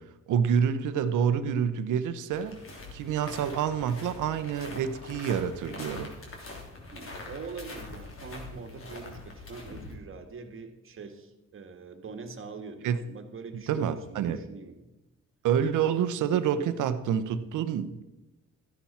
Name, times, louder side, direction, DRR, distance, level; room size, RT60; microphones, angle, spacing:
voice 1, 0.3-2.6 2.9-6.1 12.8-13.0 13.5-14.4 15.4-18.0, right 8 dB, 80° right, 11 dB, 1.0 m, -27 dB
sound 1, 2.3-10.0, left 2 dB, 45° left, 3.2 m, -43 dB
voice 2, 6.9-14.8, right 4 dB, 45° right, 6 dB, 1.8 m, -43 dB
13.5 x 10.5 x 4.3 m, 1.0 s
cardioid pair, 90°, 30 cm